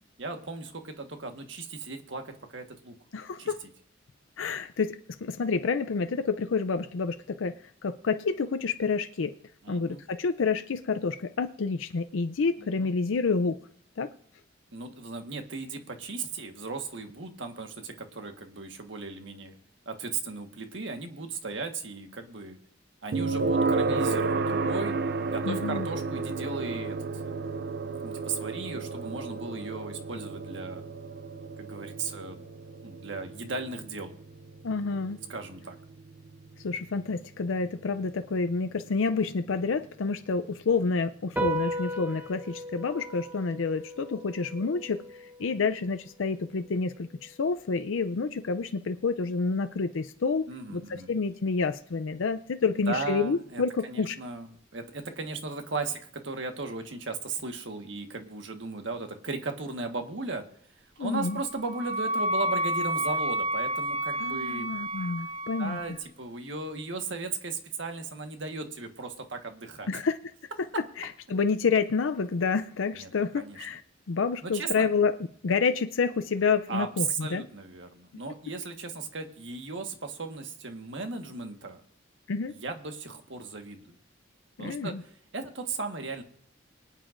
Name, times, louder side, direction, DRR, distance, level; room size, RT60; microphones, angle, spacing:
voice 1, 0.2-3.0 3.4-3.5 9.6-10.0 12.6-12.9 14.7-19.6 19.8-22.6 23.0-25.0 25.3-27.0 27.2-27.4 28.0-30.8 31.6-32.4 32.8-34.1 35.3-35.8 50.5-51.1 52.7-60.4 61.0-64.7 65.6-70.0 72.9-73.1 73.3-73.6 74.4-74.9 76.7-81.8 82.5-83.9 84.6-85.0 85.3-86.2, right 3 dB, 70° right, 5 dB, 1.5 m, -36 dB
voice 2, 3.1-3.6 4.4-7.6 7.8-9.3 9.7-13.6 14.0-14.1 25.4-25.9 34.6-35.2 36.6-54.2 61.0-61.4 64.2-65.8 69.9-70.2 71.0-73.8 74.1-75.1 75.4-77.4 82.3-82.5 84.6-85.0, left 4 dB, 90° left, 9 dB, 0.5 m, -28 dB
sound 1, 23.1-38.1, right 4 dB, 55° right, 0.5 m, -32 dB
sound 2, 41.4-48.1, right 1 dB, 10° right, 1.2 m, -37 dB
Wind instrument woodwind instrument, 61.2-65.9, right 1 dB, 30° right, 0.8 m, -30 dB
24.0 x 9.1 x 2.6 m, 0.66 s
head